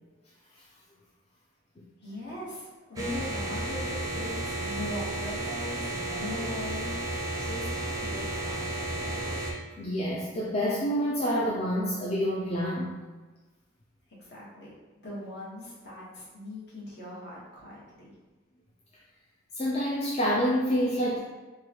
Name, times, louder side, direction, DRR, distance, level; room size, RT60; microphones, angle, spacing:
voice 1, 2.0-7.0 7.3-9.2 14.2-14.7 15.0-18.1, left 1 dB, 60° left, -6 dB, 1.3 m, -40 dB
sound 1, 3.0-9.5, right 1 dB, 20° right, 0.5 m, -33 dB
voice 2, 9.8-12.9 19.6-21.2, equal, 35° left, -5 dB, 0.4 m, -27 dB
4.6 x 2.3 x 2.9 m, 1.3 s
head